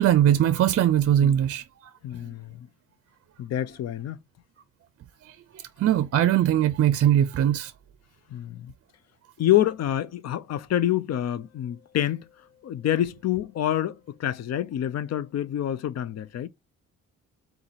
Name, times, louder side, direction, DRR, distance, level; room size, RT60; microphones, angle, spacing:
voice 1, 0.0-1.9 5.3-7.7, right 11 dB, 50° right, 0.5 m, -21 dB
voice 2, 2.0-2.7 3.4-4.2 8.3-8.7 9.4-12.3 12.6-16.5, left 12 dB, 60° left, 0.6 m, -27 dB
3.9 x 2.8 x 4.0 m
cardioid pair, 90°, 30 cm